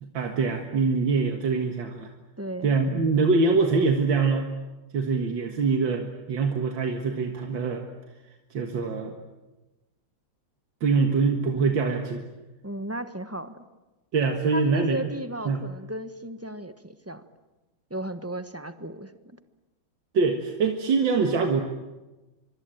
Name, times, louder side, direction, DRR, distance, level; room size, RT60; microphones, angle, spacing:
voice 1, 0.0-2.1 2.6-4.6 4.9-7.9 8.5-9.2 10.8-12.2 14.1-15.0 15.5-15.6 20.1-21.6, right 4 dB, 85° right, 4 dB, 2.4 m, -24 dB
voice 2, 2.4-2.7 12.6-13.6 14.5-17.2 17.9-19.1, right 1 dB, 10° right, 10 dB, 0.9 m, -35 dB
25.0 x 24.0 x 9.1 m, 1.1 s
omnidirectional pair, 2.0 m